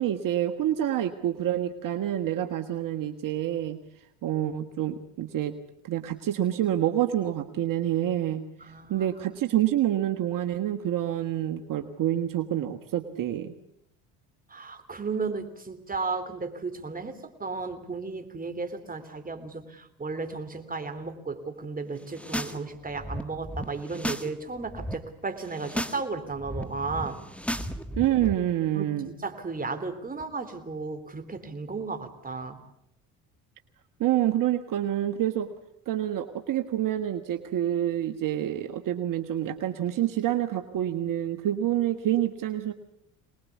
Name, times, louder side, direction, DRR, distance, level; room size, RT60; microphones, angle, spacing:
voice 1, 0.0-3.8 4.2-5.5 5.8-8.4 8.9-13.5 28.0-29.1 34.0-35.5 35.9-42.7, right 12 dB, 55° right, 9 dB, 1.4 m, -27 dB
voice 2, 8.6-9.1 14.5-27.2 28.7-32.6, right 4 dB, 20° right, 8 dB, 3.4 m, -34 dB
sound 1, 22.0-22.6 22.8-24.3 24.6-24.9 25.4-26.0 26.3-28.3, equal, 5° left, 1.8 m, -34 dB
24.0 x 20.0 x 8.4 m, 0.77 s
supercardioid pair, 75°, 38 cm